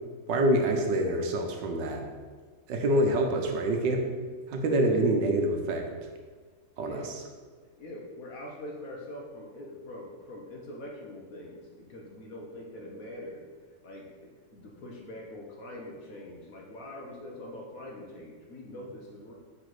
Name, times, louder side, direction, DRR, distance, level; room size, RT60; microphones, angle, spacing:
voice 1, 0.3-2.0 2.7-4.0 4.5-5.9 6.8-7.2, right 1 dB, 75° right, 3 dB, 1.4 m, -26 dB
voice 2, 6.8-7.1 7.6-13.4 13.8-19.3, left 1 dB, 55° left, -1 dB, 1.2 m, -43 dB
5.1 x 4.1 x 5.9 m, 1.5 s
omnidirectional pair, 2.0 m